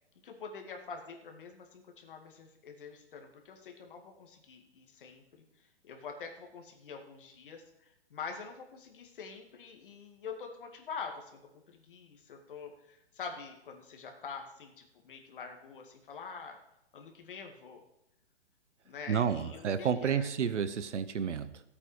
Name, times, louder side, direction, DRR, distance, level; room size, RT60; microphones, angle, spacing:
voice 1, 0.2-5.4 5.8-16.6 16.9-17.8 18.8-20.3, left 5 dB, 50° left, 3 dB, 2.2 m, -45 dB
voice 2, 19.1-21.6, right 7 dB, 90° right, 13 dB, 1.1 m, -31 dB
14.5 x 8.5 x 5.0 m, 0.82 s
hypercardioid pair, 170°, 34 cm